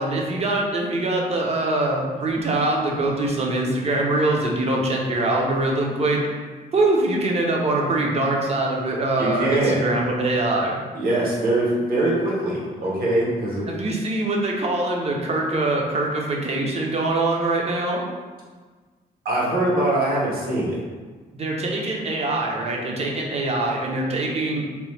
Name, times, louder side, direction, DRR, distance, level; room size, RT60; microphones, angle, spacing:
voice 1, 0.0-6.2 6.7-10.8 13.7-18.0 21.3-24.6, right 2 dB, 40° right, -1 dB, 0.6 m, -23 dB
voice 2, 9.2-9.8 10.9-13.7 19.2-20.8, right 1 dB, 70° right, -5 dB, 1.0 m, -22 dB
2.9 x 2.1 x 3.2 m, 1.4 s
cardioid pair, 100°, 16 cm